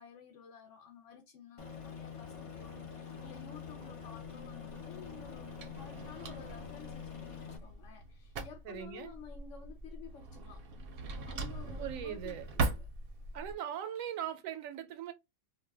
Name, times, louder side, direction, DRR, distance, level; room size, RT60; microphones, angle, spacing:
voice 1, 0.0-10.6 11.3-12.9, left 7 dB, 70° left, 0.9 m, -53 dB
Aircraft, 1.6-7.6, left 6 dB, 40° left, 0.5 m, -46 dB
Drawer open or close, 4.2-13.5, right 3 dB, 60° right, 0.7 m, -41 dB
voice 2, 8.7-9.1 11.8-12.4 13.3-15.1, right 10 dB, 85° right, 1.0 m, -40 dB
2.6 x 2.1 x 3.3 m
omnidirectional pair, 1.4 m